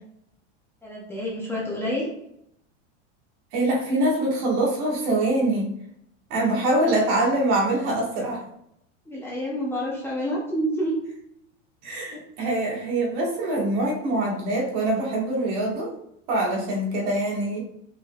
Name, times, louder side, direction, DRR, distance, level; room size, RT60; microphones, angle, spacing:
voice 1, 0.8-2.1 9.1-11.0, equal, 5° left, -6 dB, 0.7 m, -28 dB
voice 2, 3.5-5.7 6.3-8.4 11.8-15.9 16.3-17.6, right 1 dB, 55° right, -2 dB, 1.6 m, -24 dB
5.4 x 3.8 x 2.3 m, 0.77 s
supercardioid pair, 150°, 36 cm